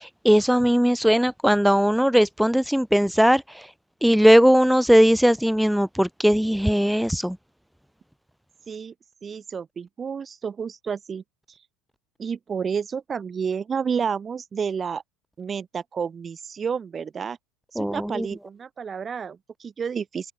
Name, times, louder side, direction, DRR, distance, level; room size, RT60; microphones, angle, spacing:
voice 1, 0.0-3.7 4.0-7.4 17.7-18.3, equal, ahead, 1.4 m, -19 dB
voice 2, 9.2-11.2 12.2-15.0 15.4-17.4 17.7-20.3, right 6 dB, 30° right, 6.6 m, -30 dB
supercardioid pair, 95°, 0 cm